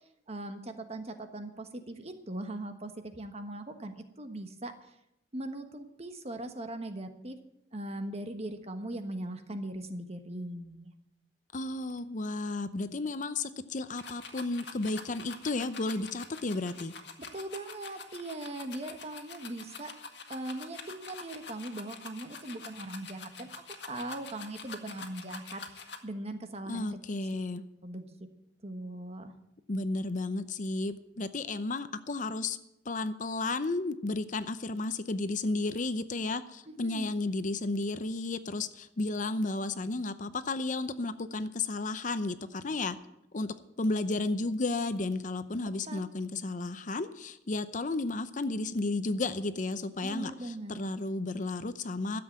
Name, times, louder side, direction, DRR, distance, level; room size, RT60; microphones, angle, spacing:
voice 1, 0.3-4.7 5.3-7.4 7.7-10.9 17.3-19.9 20.3-23.5 23.9-26.9 27.3-27.4 27.8-28.1 28.6-29.3 36.7-37.1 45.9-46.0 50.0-50.9, right 1 dB, 35° right, 8 dB, 1.3 m, -40 dB
voice 2, 11.5-16.9 26.7-27.6 29.7-32.6 32.9-43.0 43.3-52.2, left 2 dB, 45° left, 12 dB, 0.7 m, -33 dB
sound 1, 14.0-26.0, left 5 dB, 75° left, 1.7 m, -46 dB
13.0 x 7.9 x 8.6 m, 0.83 s
head